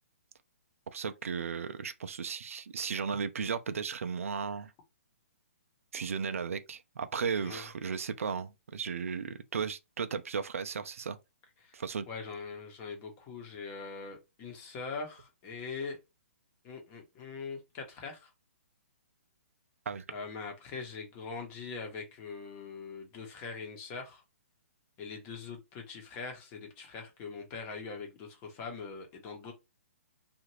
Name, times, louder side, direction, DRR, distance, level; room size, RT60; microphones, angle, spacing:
voice 1, 0.9-4.7 5.9-11.2 11.7-12.1 19.9-20.0, right 6 dB, 75° right, 0.5 m, -35 dB
voice 2, 12.1-16.0 16.6-18.3 20.1-24.2 25.0-29.5, left 4 dB, 25° left, 1.0 m, -42 dB
2.7 x 2.5 x 3.0 m
hypercardioid pair, 150°, 8 cm